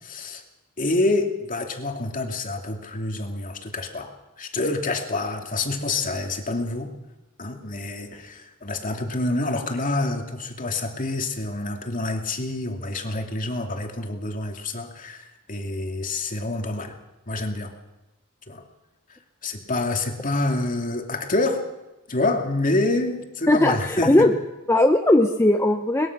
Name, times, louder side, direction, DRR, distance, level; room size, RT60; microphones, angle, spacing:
voice 1, 0.0-0.4 0.8-4.1 4.4-6.9 7.4-17.0 17.3-17.7 18.5-18.6 19.4-21.7 22.1-24.3, left 2 dB, 40° left, 3 dB, 2.6 m, -27 dB
voice 2, 23.5-24.3 24.7-26.1, left 1 dB, 10° left, 4 dB, 0.9 m, -18 dB
22.0 x 21.0 x 6.1 m, 1.0 s
head